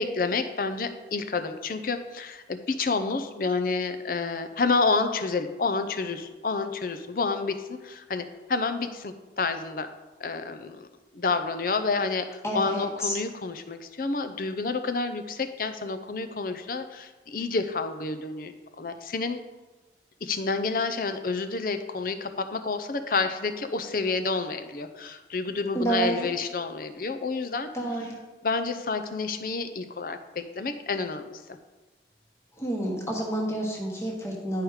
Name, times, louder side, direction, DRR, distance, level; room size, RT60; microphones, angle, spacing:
voice 1, 0.0-9.9 10.2-10.9 11.1-19.4 20.2-27.7 28.4-31.6, left 4 dB, 50° left, 9 dB, 0.6 m, -29 dB
voice 2, 12.4-13.2 25.7-26.3 27.7-28.2 32.6-34.6, right 1 dB, 15° left, -2 dB, 1.2 m, -29 dB
10.5 x 4.8 x 4.8 m, 1.2 s
head